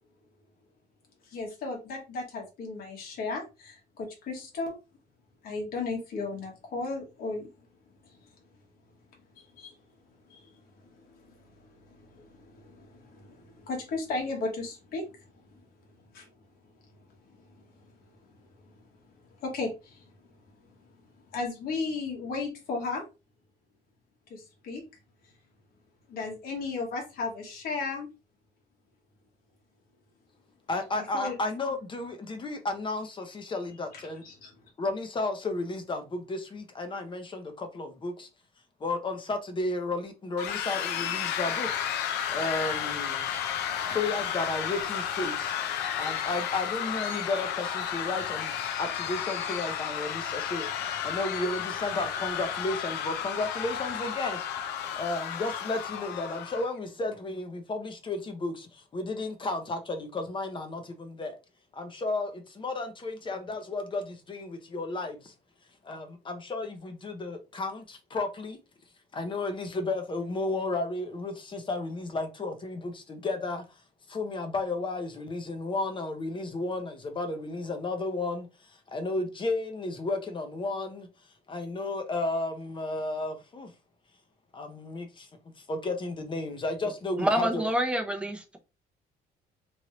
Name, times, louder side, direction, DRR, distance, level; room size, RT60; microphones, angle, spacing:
voice 1, 1.3-4.8 5.4-7.5 9.4-9.7 10.3-10.6 10.8-15.1 15.5-15.6 16.1-16.3 19.4-20.1 21.3-23.0 24.3-24.8 26.1-28.1 31.1-31.3 34.2-34.5, left 3 dB, 65° left, 1.4 m, -35 dB
voice 2, 30.7-34.2 34.8-38.3 38.8-41.8 42.3-43.3 43.9-45.5 46.0-50.7 51.0-54.4 55.0-61.4 61.7-65.3 65.8-68.6 69.1-73.6 74.1-81.1 81.5-83.7 84.5-85.3 85.6-87.6, left 2 dB, 30° left, 0.7 m, -33 dB
sound 1, 40.4-56.7, left 9 dB, 80° left, 0.5 m, -32 dB
voice 3, 87.2-88.6, equal, 5° right, 0.7 m, -27 dB
3.1 x 2.7 x 3.0 m
cardioid pair, 110°, 17 cm